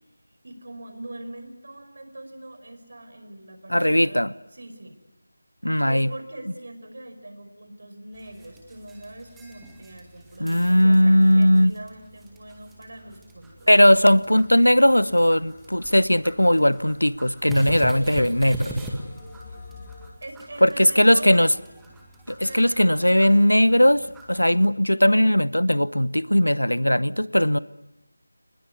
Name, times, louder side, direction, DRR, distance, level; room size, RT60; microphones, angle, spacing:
voice 1, 0.4-4.2 4.5-5.0 5.9-14.2 19.5-19.6 20.2-21.5 22.4-23.9, right 1 dB, 50° right, 7 dB, 5.2 m, -42 dB
voice 2, 3.7-4.3 5.6-6.1 10.4-11.7 13.7-18.7 20.6-21.5 22.3-24.0 24.3-27.6, equal, 85° left, 18 dB, 1.0 m, -18 dB
sound 1, 8.1-24.7, right 1 dB, 5° right, 1.9 m, -39 dB
sound 2, 14.2-20.1, left 3 dB, 25° left, 5.0 m, -49 dB
24.0 x 21.0 x 9.6 m, 0.95 s
figure-of-eight pair, 165°, 0 cm